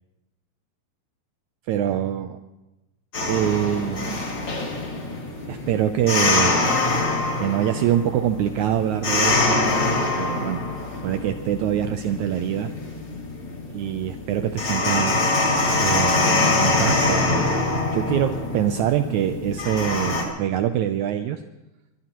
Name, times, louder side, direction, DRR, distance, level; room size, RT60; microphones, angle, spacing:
voice 1, 1.7-2.4 3.3-4.3 5.5-6.7 7.4-10.6 11.0-12.7 13.7-17.5 17.9-21.4, right 11 dB, 75° right, 8 dB, 1.9 m, -25 dB
sound 1, 3.1-20.2, left 2 dB, 35° left, 3.1 m, -24 dB
23.0 x 20.5 x 3.0 m, 1.0 s
omnidirectional pair, 3.7 m